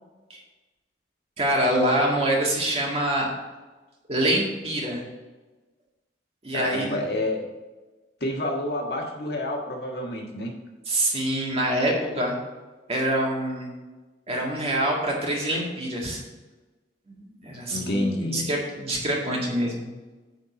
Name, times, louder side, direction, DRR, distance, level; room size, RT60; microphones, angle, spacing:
voice 1, 1.4-3.3 4.1-5.0 6.4-7.0 10.9-12.4 12.9-13.7 14.3-16.2 17.1-19.9, right 1 dB, 35° right, -2 dB, 1.9 m, -25 dB
voice 2, 6.5-7.4 8.2-10.5 17.7-18.5, left 1 dB, 60° left, 0 dB, 1.5 m, -29 dB
9.4 x 4.2 x 5.7 m, 1.2 s
head